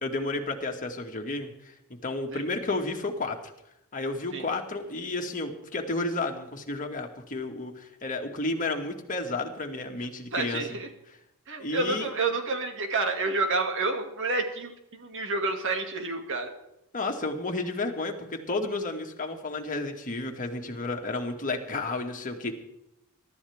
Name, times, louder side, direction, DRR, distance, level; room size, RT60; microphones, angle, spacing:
voice 1, 0.0-1.7 2.0-3.4 3.9-10.6 11.6-12.1 16.9-22.5, left 2 dB, 40° left, 2 dB, 2.2 m, -32 dB
voice 2, 10.3-10.9 11.5-16.5, right 3 dB, 60° right, 4 dB, 2.4 m, -29 dB
23.5 x 13.0 x 3.6 m, 0.83 s
head